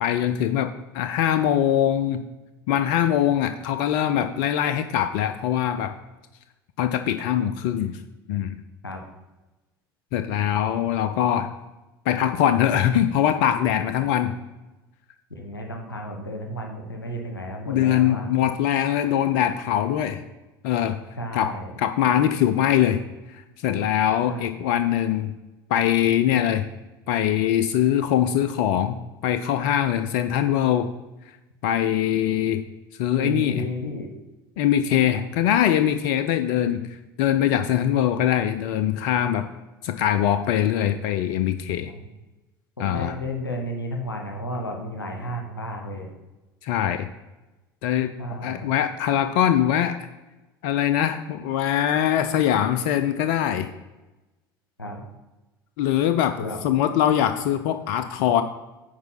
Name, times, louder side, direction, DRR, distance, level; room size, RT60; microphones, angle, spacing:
voice 1, 0.0-2.2 2.7-5.9 6.8-8.0 8.3-8.6 10.1-11.5 12.1-14.3 17.7-20.2 20.6-21.0 21.3-21.5 21.8-23.0 23.3-25.3 25.7-26.7 27.1-29.0 29.2-30.9 31.6-32.6 33.0-33.6 34.6-36.8 37.2-39.5 39.8-41.9 42.8-43.1 46.6-47.1 47.8-48.1 48.4-50.1 50.6-53.7 55.8-58.4, left 10 dB, 60° left, 9 dB, 0.6 m, -22 dB
voice 2, 15.3-18.3 21.2-21.7 24.2-24.5 33.2-34.1 41.8-42.1 42.8-46.1 48.2-48.6 54.8-55.0 56.4-56.6, equal, 90° left, 3 dB, 1.2 m, -33 dB
9.6 x 4.6 x 5.7 m, 1.1 s
figure-of-eight pair, 70°, 12 cm